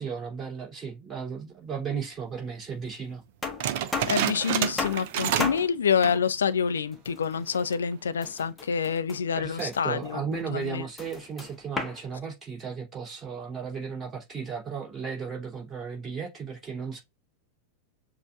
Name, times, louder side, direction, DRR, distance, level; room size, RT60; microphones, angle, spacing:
voice 1, 0.0-3.2 9.3-17.0, right 6 dB, 20° right, 2.8 m, -35 dB
sound 1, 2.0-2.1 3.4-4.3 4.8-5.1 5.4-5.8 6.9-7.7 8.2-9.3 9.6-12.0, left 4 dB, 10° left, 1.0 m, -35 dB
sound 2, 3.6-5.7 5.9-6.3 6.8-6.9 7.5-7.9, right 10 dB, 50° right, 0.5 m, -29 dB
voice 2, 4.1-10.2 10.5-10.8, left 7 dB, 70° left, 0.4 m, -27 dB
7.1 x 2.5 x 2.2 m
figure-of-eight pair, 90°, 0 cm